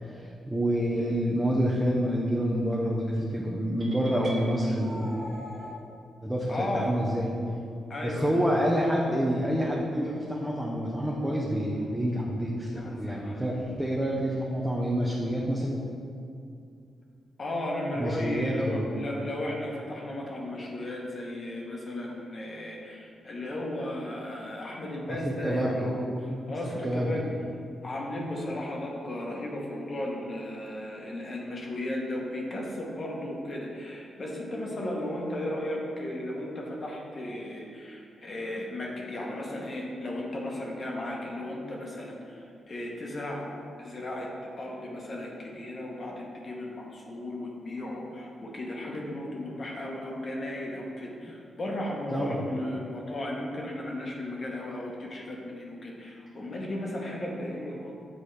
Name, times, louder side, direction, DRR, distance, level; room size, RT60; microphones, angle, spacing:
voice 1, 0.1-5.2 6.2-7.3 8.0-15.8 18.0-18.9 25.1-25.9 26.8-27.1 52.1-52.4, equal, 5° right, -4 dB, 0.7 m, -28 dB
sound 1, 3.8-5.8, equal, 45° right, 0.9 m, -42 dB
voice 2, 6.5-7.0 7.9-8.4 12.8-13.5 17.4-27.3 27.8-43.4 43.8-44.3 44.6-57.9, left 1 dB, 45° left, -1 dB, 1.1 m, -35 dB
7.9 x 4.1 x 3.3 m, 2.5 s
cardioid pair, 95°, 0 cm